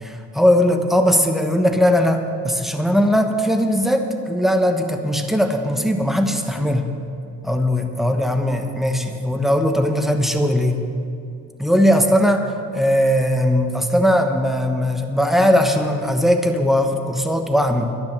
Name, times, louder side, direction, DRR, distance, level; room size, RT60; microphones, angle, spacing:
voice 1, 0.0-6.9 7.4-10.8 11.6-12.5 12.7-17.9, equal, ahead, 5 dB, 1.2 m, -19 dB
12.0 x 10.5 x 6.7 m, 2.5 s
cardioid pair, 90°, 30 cm